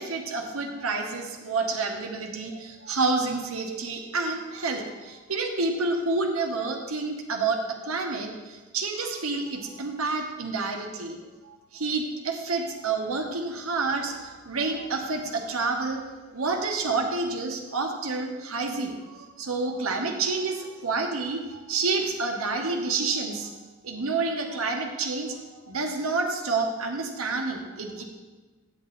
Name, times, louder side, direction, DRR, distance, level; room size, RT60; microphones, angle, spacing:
voice 1, 0.0-11.2 11.4-16.0 16.3-23.5 23.8-28.0, right 3 dB, 90° right, 2 dB, 1.3 m, -29 dB
9.1 x 8.4 x 4.2 m, 1.2 s
head